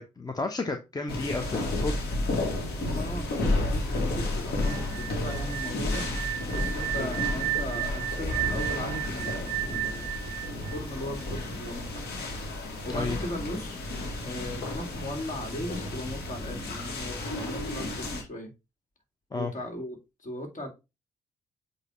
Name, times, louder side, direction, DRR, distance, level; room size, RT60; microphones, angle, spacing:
voice 1, 0.0-2.0 6.9-7.1 12.9-13.2 19.3-19.5, left 3 dB, 20° left, 0.8 m, -32 dB
sound 1, 1.1-18.2, left 2 dB, 60° left, 1.8 m, -32 dB
voice 2, 2.8-6.1 6.5-10.1 10.5-12.1 12.8-13.8 14.2-18.5 19.3-20.7, left 1 dB, 40° left, 2.3 m, -38 dB
sound 2, 4.6-11.5, right 14 dB, 75° right, 0.4 m, -33 dB
8.0 x 2.8 x 4.2 m
figure-of-eight pair, 40°, 19 cm